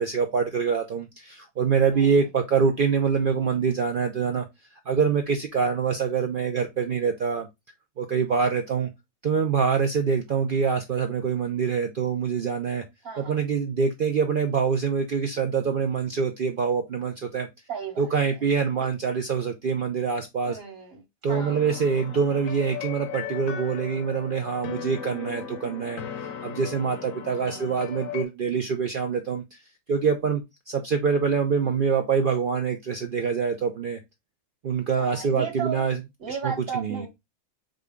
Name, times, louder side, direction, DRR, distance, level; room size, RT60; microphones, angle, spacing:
voice 1, 0.0-4.5 4.9-7.5 8.0-8.9 9.2-12.8 13.2-17.5 18.0-20.6 21.2-26.0 26.4-29.4 29.9-34.0 34.6-36.0 36.3-37.1, right 6 dB, 65° right, 0.5 m, -25 dB
voice 2, 1.9-2.3 13.0-13.4 17.7-18.4 20.5-21.0 21.3-21.8 27.4-27.7 35.0-35.8 36.2-37.1, right 6 dB, 45° right, 1.5 m, -35 dB
sound 1, 21.3-28.2, left 7 dB, 70° left, 1.1 m, -37 dB
5.0 x 2.2 x 3.5 m
omnidirectional pair, 1.5 m